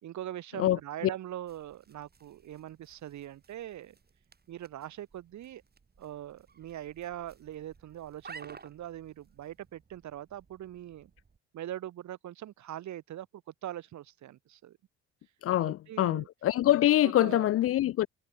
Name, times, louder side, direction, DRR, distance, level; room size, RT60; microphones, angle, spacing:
voice 1, 0.0-4.0 4.5-5.6 6.0-11.1 11.5-14.8 15.6-16.3 17.0-17.5, right 12 dB, 65° right, 3.7 m, -42 dB
sound 1, 1.4-11.4, right 5 dB, 30° right, 7.7 m, -55 dB
voice 2, 15.4-18.1, left 13 dB, 50° left, 0.4 m, -25 dB
cardioid pair, 85°, 31 cm